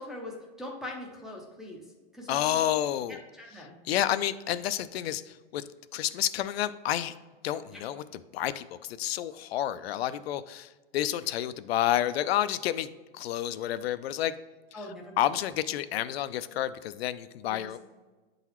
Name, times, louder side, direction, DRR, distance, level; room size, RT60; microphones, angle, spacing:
voice 1, 0.0-1.8 2.1-2.6 3.1-3.7 7.7-7.8 14.7-15.3 17.4-17.7, left 1 dB, ahead, -3 dB, 0.4 m, -42 dB
voice 2, 2.3-3.2 3.9-5.2 5.5-5.6 5.9-7.1 7.4-8.0 8.3-12.9 13.1-14.3 15.2-17.8, left 12 dB, 80° left, 13 dB, 0.4 m, -29 dB
8.1 x 3.9 x 3.0 m, 1.2 s
supercardioid pair, 155°, 30 cm